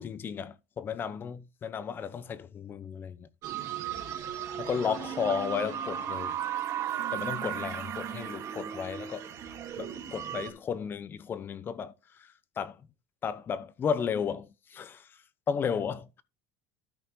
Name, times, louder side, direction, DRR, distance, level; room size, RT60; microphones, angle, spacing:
voice 1, 0.0-3.3 4.6-6.3 7.1-9.3 9.8-12.8 13.2-16.2, left 7 dB, 25° left, 0.8 m, -34 dB
sound 1, 3.4-10.5, right 9 dB, 40° right, 2.2 m, -35 dB
13.0 x 5.4 x 3.8 m
cardioid pair, 150°, 8 cm